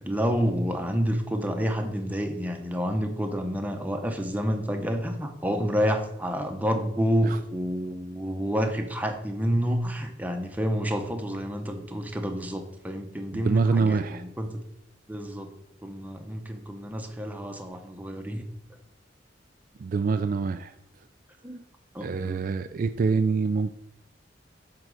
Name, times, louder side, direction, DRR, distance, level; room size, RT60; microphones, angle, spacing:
voice 1, 0.0-14.6 15.1-15.5 15.8-18.5 21.4-21.6 21.9-22.5, equal, 10° right, 5 dB, 0.8 m, -29 dB
voice 2, 13.3-14.2 19.8-20.8 22.0-23.8, right 4 dB, 45° right, 10 dB, 0.3 m, -25 dB
9.0 x 3.7 x 6.3 m, 0.80 s
head